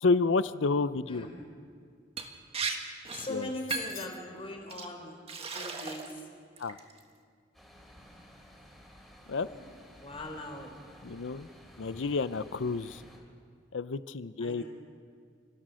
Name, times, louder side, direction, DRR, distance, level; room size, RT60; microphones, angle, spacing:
voice 1, 0.0-1.3 3.3-3.5 6.6-6.8 9.3-9.5 11.0-11.5 11.8-13.0 13.7-14.6, left 4 dB, 75° left, 15 dB, 0.6 m, -29 dB
voice 2, 1.1-1.5 3.1-5.2 5.5-6.1 9.5-9.6 10.0-10.7 14.4-14.6, left 1 dB, 30° left, 3 dB, 3.5 m, -41 dB
Liquid, 2.2-2.3 2.5-2.8 3.0-3.3 3.7-4.0 4.7-4.9 5.3-6.2 6.6-7.0, right 5 dB, 30° right, 1.7 m, -36 dB
sound 1, 3.7-4.3, left 11 dB, 50° left, 1.1 m, -42 dB
sound 2, 7.5-13.2, equal, ahead, 3.7 m, -54 dB
29.5 x 15.5 x 6.3 m, 2.1 s
head